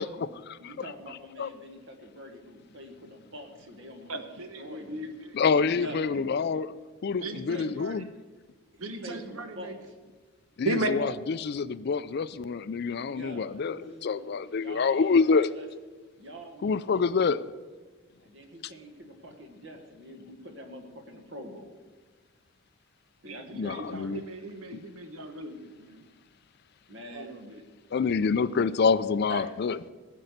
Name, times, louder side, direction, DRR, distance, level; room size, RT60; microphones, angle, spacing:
voice 1, 0.0-0.7 1.4-1.5 5.3-6.7 7.0-8.1 10.6-15.5 16.6-17.5 23.5-24.3 24.7-24.8 27.9-29.8, left 5 dB, 50° left, 16 dB, 0.4 m, -27 dB
voice 2, 0.6-5.0 5.7-6.1 6.5-6.6 7.2-7.7 8.7-9.9 12.9-15.7 16.2-17.3 18.2-21.7 23.2-24.0 24.6-24.7 26.9-27.4 29.3-29.5, equal, 55° right, 5 dB, 1.5 m, -45 dB
voice 3, 4.1-5.4 7.2-7.9 8.8-9.8 10.6-11.1 23.2-23.6 23.9-26.0 27.1-27.6 28.2-28.5, right 2 dB, 80° right, 8 dB, 1.2 m, -36 dB
16.0 x 5.4 x 7.9 m, 1.3 s
head